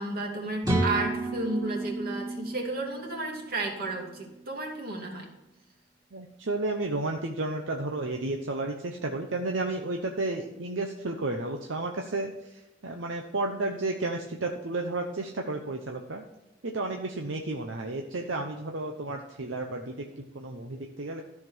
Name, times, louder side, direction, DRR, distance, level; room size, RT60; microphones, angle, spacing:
voice 1, 0.0-5.3, right 2 dB, 50° right, 1 dB, 2.5 m, -33 dB
sound 1, 0.6-4.4, right 2 dB, 20° right, 2.4 m, -31 dB
voice 2, 6.1-16.2 16.6-21.2, right 2 dB, 75° right, 2 dB, 0.9 m, -32 dB
13.5 x 5.9 x 4.6 m, 1.0 s
head